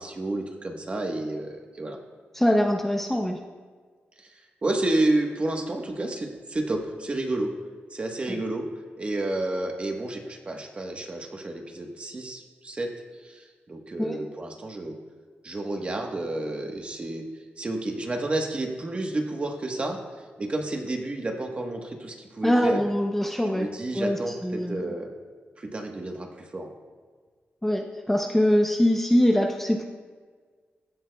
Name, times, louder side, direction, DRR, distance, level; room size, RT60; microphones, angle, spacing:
voice 1, 0.0-2.0 4.2-7.5 7.9-8.7 9.0-15.0 15.4-17.2 17.6-20.0 20.4-22.8 23.5-25.1 25.6-26.7, right 2 dB, 30° right, 2 dB, 1.2 m, -30 dB
voice 2, 2.3-3.4 8.3-8.4 14.0-14.2 22.4-23.7 23.9-24.8 27.6-29.8, equal, 5° left, 2 dB, 0.6 m, -23 dB
15.0 x 12.0 x 2.3 m, 1.5 s
wide cardioid pair, 135°, 4 cm